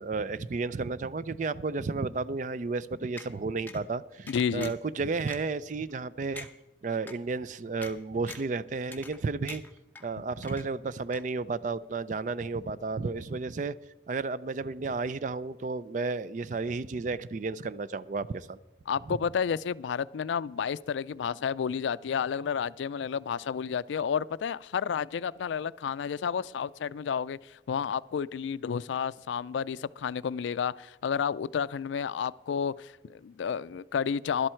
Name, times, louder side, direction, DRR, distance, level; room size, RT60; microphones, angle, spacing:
voice 1, 0.0-6.5 6.8-9.6 10.0-13.7 14.1-18.6 19.1-19.2, right 4 dB, 45° right, 0.4 m, -32 dB
sound 1, 3.2-3.3 3.7-3.8 4.3-4.9 5.3-5.4 5.9-6.0 6.4-6.5 7.1-7.2 7.8-7.9 8.3-8.5 8.9-9.2 9.5-10.0 10.4-10.9 11.1-11.2, left 3 dB, 10° left, 0.8 m, -44 dB
voice 2, 4.3-4.7 18.9-34.5, left 7 dB, 85° left, 0.3 m, -31 dB
12.5 x 11.5 x 4.4 m
head